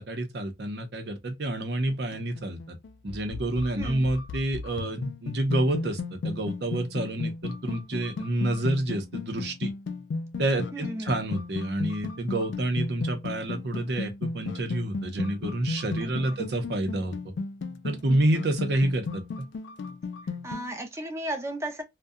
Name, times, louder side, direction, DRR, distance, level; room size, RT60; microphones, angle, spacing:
voice 1, 0.0-2.8 3.0-9.7 10.4-17.1 17.8-19.5, right 1 dB, 60° right, 0.6 m, -28 dB
sound 1, 1.9-20.7, left 3 dB, 65° left, 0.3 m, -35 dB
voice 2, 3.8-4.1 10.7-11.2 16.0-16.5 20.4-21.8, right 1 dB, 15° right, 0.5 m, -35 dB
2.7 x 2.1 x 2.3 m
head